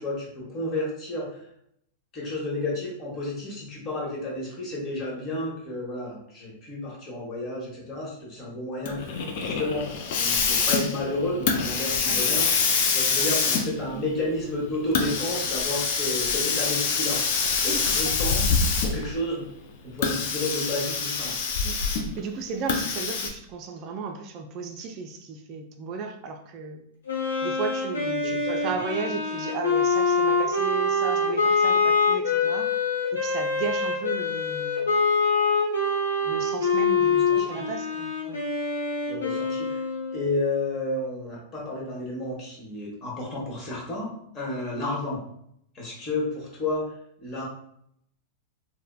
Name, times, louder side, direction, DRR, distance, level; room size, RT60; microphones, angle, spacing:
voice 1, 0.0-1.4 2.1-12.5 12.9-17.2 17.6-18.4 18.8-19.5 19.8-21.3 28.2-28.7 37.3-37.6 39.1-39.8 40.1-45.2 45.7-47.5, left 2 dB, 35° left, -3 dB, 1.2 m, -31 dB
Hiss, 8.8-19.2 19.9-22.2 22.7-23.3, left 5 dB, 60° left, 0.4 m, -25 dB
voice 2, 17.7-18.1 21.6-26.8 27.4-32.7 33.1-34.9 36.2-38.4, right 4 dB, 45° right, 3 dB, 0.4 m, -35 dB
Wind instrument woodwind instrument, 27.1-40.5, left 3 dB, 80° left, 0.9 m, -25 dB
3.1 x 2.1 x 2.2 m, 0.71 s
hypercardioid pair, 100°, 0 cm